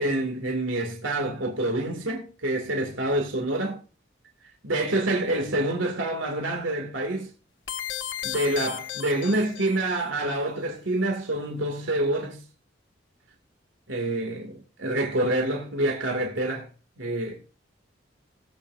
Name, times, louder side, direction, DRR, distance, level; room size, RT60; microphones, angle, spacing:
voice 1, 0.0-3.8 4.6-7.3 8.2-12.4 13.9-14.5 14.8-16.7 17.0-17.4, right 1 dB, 85° right, 2.4 m, -27 dB
sound 1, 7.7-10.0, left 10 dB, 75° left, 1.1 m, -34 dB
18.5 x 8.5 x 2.6 m
head